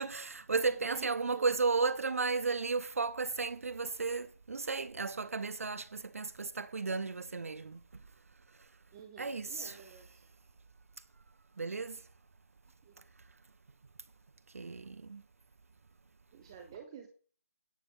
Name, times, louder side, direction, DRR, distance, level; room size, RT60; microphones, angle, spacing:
voice 1, 0.0-7.8 9.2-9.8 11.6-12.0 14.5-15.2, right 4 dB, 65° right, 0.6 m, -34 dB
voice 2, 0.7-1.5 8.9-10.2 12.8-13.0 16.3-17.1, right 7 dB, 15° right, 0.7 m, -50 dB
9.5 x 9.3 x 3.7 m
figure-of-eight pair, 170°, 8 cm